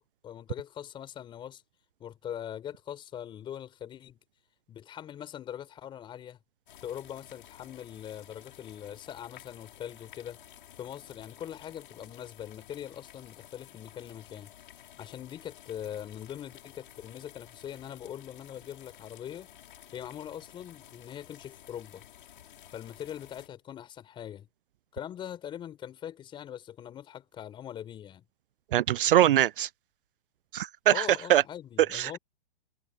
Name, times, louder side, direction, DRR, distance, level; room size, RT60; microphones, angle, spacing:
voice 1, 0.0-1.6 2.0-4.2 4.7-6.4 6.8-10.4 10.8-14.5 15.0-19.5 19.9-22.0 22.7-24.5 24.9-28.2 30.9-32.2, left 10 dB, 15° left, 4.8 m, -42 dB
sound 1, 6.7-23.5, left 11 dB, 60° left, 6.4 m, -53 dB
voice 2, 28.7-29.7 30.5-31.4 31.9-32.2, right 12 dB, 65° right, 0.4 m, -23 dB
hypercardioid pair, 155°, 29 cm